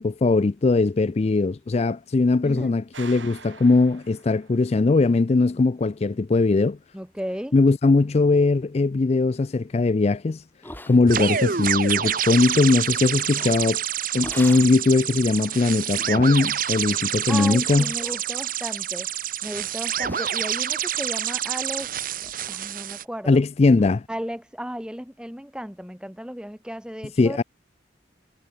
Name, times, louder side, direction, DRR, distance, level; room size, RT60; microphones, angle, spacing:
voice 1, 0.0-6.8 7.5-10.4 10.9-13.8 14.1-17.9 23.3-24.0 27.2-27.4, left 3 dB, 35° left, 0.4 m, -20 dB
voice 2, 2.4-2.7 6.9-7.5 17.3-19.1 19.4-21.9 22.5-23.4 24.1-27.4, equal, 5° right, 2.7 m, -34 dB
sound 1, 2.9-4.9, right 5 dB, 85° right, 2.7 m, -44 dB
sound 2, 10.6-11.4 11.8-12.3 13.4-13.8 14.2-14.8 15.3-15.4 16.0-16.4 16.8-17.1 17.6-18.3 18.7-19.2 19.6-19.7 20.0-21.9 22.2-22.5 22.8-22.9 23.3-23.4 23.8-23.9, left 1 dB, 10° left, 6.0 m, -44 dB
sound 3, 11.1-23.0, right 9 dB, 50° right, 1.3 m, -27 dB
head